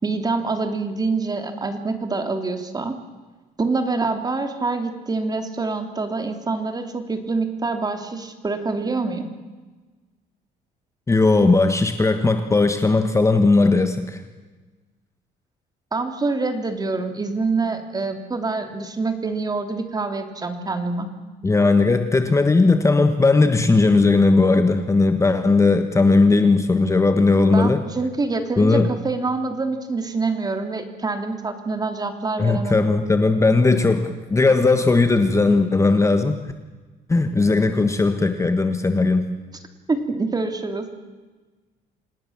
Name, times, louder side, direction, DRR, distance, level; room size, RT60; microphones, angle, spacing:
voice 1, 0.0-3.0 3.6-9.3 15.9-21.1 27.5-32.9 39.9-40.9, right 3 dB, 25° right, 6 dB, 3.0 m, -26 dB
voice 2, 11.1-14.2 21.4-27.8 28.6-28.9 32.4-36.4 37.1-39.2, left 3 dB, 15° left, 8 dB, 1.4 m, -17 dB
27.0 x 19.0 x 7.3 m, 1.3 s
cardioid pair, 110°, 17 cm